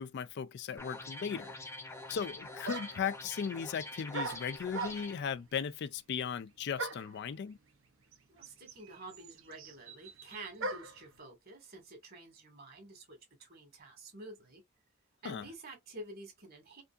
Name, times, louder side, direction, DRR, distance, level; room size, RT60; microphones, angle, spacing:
voice 1, 0.0-1.6 2.1-7.6 15.2-15.5, left 7 dB, 55° left, 0.3 m, -37 dB
sound 1, 0.8-5.2, left 2 dB, 15° left, 0.8 m, -46 dB
sound 2, 2.2-2.3 2.6-3.1 4.1-5.3 6.8-7.2 8.1-8.2 8.4-11.0, right 3 dB, 70° right, 0.9 m, -40 dB
voice 2, 8.3-14.6 15.2-16.8, right 2 dB, 45° right, 2.0 m, -49 dB
4.5 x 2.7 x 2.5 m
head